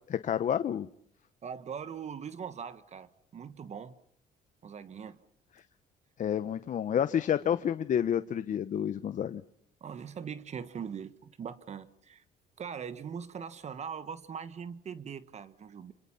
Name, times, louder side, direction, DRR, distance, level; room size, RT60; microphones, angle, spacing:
voice 1, 0.1-0.9 6.2-9.4, left 9 dB, 50° left, 11 dB, 1.0 m, -29 dB
voice 2, 1.4-3.9 4.6-5.2 9.8-12.2 12.6-15.9, right 7 dB, 40° right, 13 dB, 1.4 m, -41 dB
27.0 x 26.5 x 5.7 m, 0.66 s
cardioid pair, 110°, 17 cm